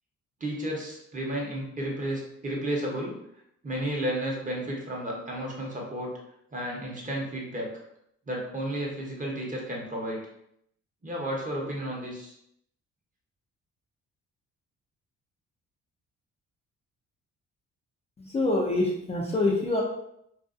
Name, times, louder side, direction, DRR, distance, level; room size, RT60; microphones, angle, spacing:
voice 1, 0.4-3.2 3.6-6.1 6.5-7.7 8.3-10.2 11.0-12.3, right 1 dB, 25° right, -2 dB, 0.8 m, -32 dB
voice 2, 18.2-19.8, left 2 dB, 20° left, -3 dB, 0.4 m, -25 dB
2.5 x 2.2 x 2.5 m, 0.74 s
cardioid pair, 90°, 30 cm